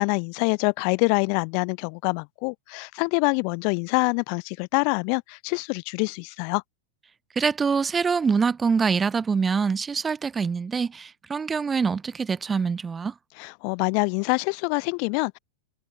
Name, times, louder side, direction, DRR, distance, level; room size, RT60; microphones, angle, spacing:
voice 1, 0.0-6.6 13.4-15.4, left 40 dB or more, 45° left, 0.4 m, -25 dB
voice 2, 7.4-13.1, right 5 dB, 15° right, 0.7 m, -24 dB
figure-of-eight pair, 90°, 0 cm